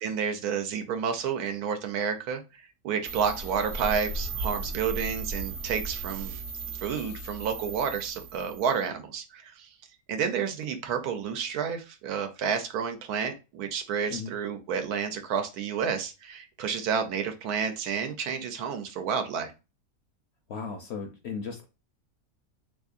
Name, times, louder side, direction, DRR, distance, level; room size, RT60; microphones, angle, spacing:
voice 1, 0.0-2.4 2.8-6.3 6.8-9.7 10.1-19.5, right 7 dB, 90° right, 7 dB, 1.2 m, -30 dB
sound 1, 3.0-8.8, right 3 dB, 55° right, 0.8 m, -36 dB
voice 2, 20.5-21.7, left 5 dB, 65° left, 5 dB, 0.7 m, -36 dB
3.6 x 2.9 x 2.4 m, 0.28 s
omnidirectional pair, 1.6 m